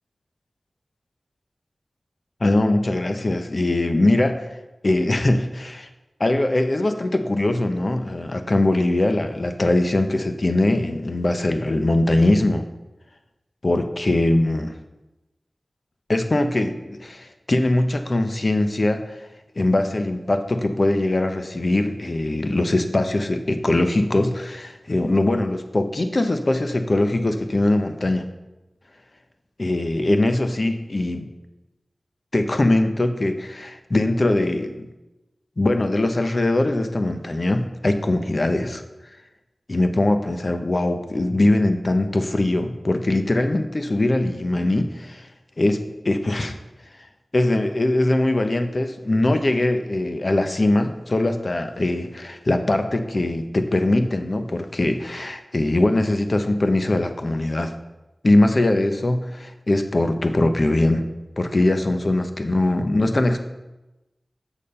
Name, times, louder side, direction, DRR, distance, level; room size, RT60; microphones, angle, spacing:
voice 1, 2.4-4.4 4.8-5.9 6.2-12.6 13.6-14.8 16.1-19.2 19.6-28.2 29.6-31.3 32.3-34.9 35.6-38.8 39.7-45.3 45.6-46.6 47.3-57.7 58.2-61.0 61.4-63.4, left 1 dB, 50° left, 7 dB, 0.8 m, -21 dB
7.2 x 6.6 x 5.4 m, 1.0 s
cardioid pair, 50°, 0 cm